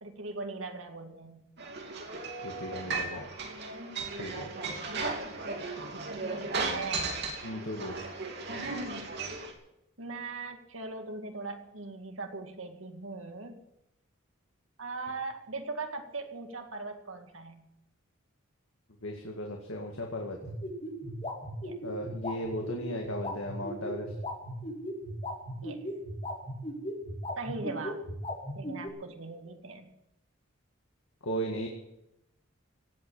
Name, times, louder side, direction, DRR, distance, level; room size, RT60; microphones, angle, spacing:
voice 1, 0.0-1.5 4.5-5.0 6.4-7.2 10.0-13.6 14.8-17.7 21.6-21.8 25.6-25.9 27.4-28.0 28.6-29.9, right 3 dB, 70° right, 5 dB, 2.2 m, -40 dB
sound 1, 1.6-9.5, right 3 dB, 55° right, 2.9 m, -36 dB
voice 2, 2.4-3.3 4.2-4.5 7.4-8.1 19.0-20.4 21.8-24.1 31.2-31.7, equal, 70° left, 1 dB, 2.1 m, -36 dB
sound 2, 20.4-28.9, left 1 dB, 30° left, 5.4 m, -37 dB
17.5 x 8.3 x 8.8 m, 0.85 s
head